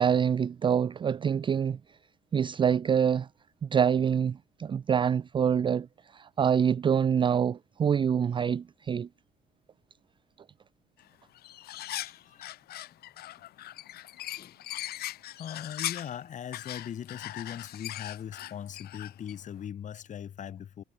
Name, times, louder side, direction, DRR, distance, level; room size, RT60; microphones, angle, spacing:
voice 1, 0.0-1.8 2.3-3.3 3.6-5.9 6.1-9.1, right 7 dB, 30° right, 0.4 m, -26 dB
sound 1, 11.0-11.1 11.3-16.2 16.5-19.4, left 14 dB, 70° left, 1.2 m, -39 dB
voice 2, 11.7-12.5 14.4-14.6 15.0-20.8, left 9 dB, 45° left, 1.9 m, -40 dB
cardioid pair, 110°, 17 cm